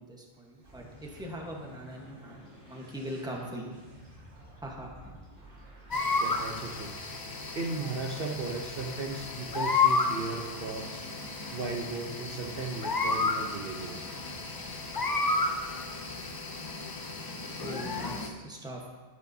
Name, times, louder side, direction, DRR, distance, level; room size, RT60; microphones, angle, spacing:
voice 1, 0.0-3.8 4.6-5.2 17.6-18.9, equal, 5° right, -1 dB, 1.1 m, -41 dB
sound 1, 0.6-16.3, equal, 35° right, 3.1 m, -52 dB
sound 2, 5.9-18.3, left 3 dB, 30° left, 0.5 m, -32 dB
voice 2, 6.2-6.9 7.5-11.0 11.5-14.0, right 3 dB, 55° right, 1 dB, 1.0 m, -36 dB
9.7 x 9.2 x 2.8 m, 1.4 s
omnidirectional pair, 1.2 m